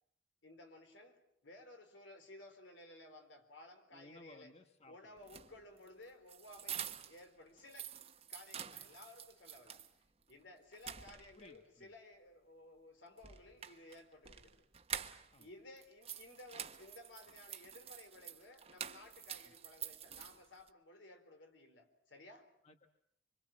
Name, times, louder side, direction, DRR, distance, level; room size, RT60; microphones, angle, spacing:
voice 1, 0.4-4.5 4.9-8.0 8.3-9.8 10.3-14.7 15.4-22.5, left 2 dB, 70° left, 6 dB, 4.1 m, -57 dB
voice 2, 3.9-5.2 10.9-11.0 11.4-11.9 15.3-15.5 19.5-19.6 22.6-22.9, left 2 dB, 35° left, 6 dB, 1.3 m, -60 dB
sound 1, 5.2-7.3 7.6-9.9 10.3-10.4 10.7-11.6 13.2-15.5 15.8-20.7, right 8 dB, 30° right, 1.2 m, -47 dB
25.5 x 25.0 x 7.5 m, 0.73 s
head